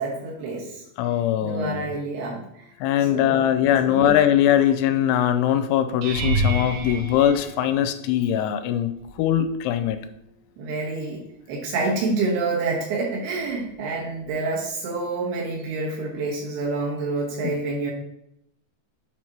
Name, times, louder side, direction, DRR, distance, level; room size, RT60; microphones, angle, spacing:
voice 1, 0.0-0.8 1.4-2.4 3.1-4.2 10.6-17.9, right 3 dB, 70° right, -3 dB, 3.1 m, -28 dB
voice 2, 1.0-1.9 2.8-8.9 9.2-10.0, left 10 dB, 90° left, 10 dB, 2.9 m, -21 dB
sound 1, 6.0-8.3 9.0-9.4 9.8-9.9 14.3-14.4, right 1 dB, 90° right, 3.1 m, -28 dB
10.5 x 4.2 x 3.0 m, 0.80 s
omnidirectional pair, 5.2 m